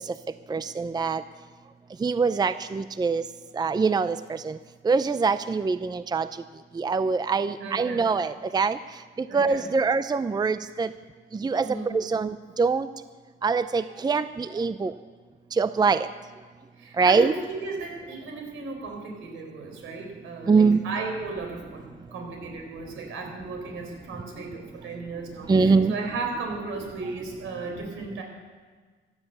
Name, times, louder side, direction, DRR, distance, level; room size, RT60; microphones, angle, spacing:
voice 1, 0.5-1.2 2.0-3.2 3.6-4.6 4.8-6.3 6.8-8.8 9.3-10.9 11.4-11.7 11.9-12.9 13.4-14.9 15.6-16.0 17.0-17.3 20.5-20.8 25.5-25.9, right 4 dB, 20° right, 13 dB, 0.5 m, -23 dB
voice 2, 7.6-8.1 9.3-9.7 11.6-11.9 16.8-28.2, right 3 dB, 85° right, 2 dB, 4.6 m, -35 dB
15.0 x 10.5 x 8.1 m, 1.5 s
cardioid pair, 90°, 20 cm